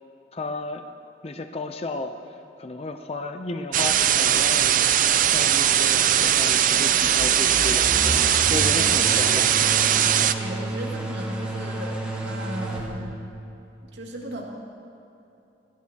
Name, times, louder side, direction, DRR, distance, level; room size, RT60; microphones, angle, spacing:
voice 1, 0.3-0.8 1.2-2.2 2.6-4.8 5.3-8.0 8.5-9.6, left 2 dB, 35° left, 6 dB, 0.6 m, -33 dB
sound 1, 3.7-10.3, right 10 dB, 50° right, 0.5 m, -20 dB
sound 2, 7.0-12.8, right 1 dB, 5° right, 3.0 m, -31 dB
voice 2, 8.4-9.0 10.4-13.2 13.8-14.5, right 1 dB, 85° right, -2 dB, 2.3 m, -36 dB
23.0 x 15.5 x 2.9 m, 2.9 s
head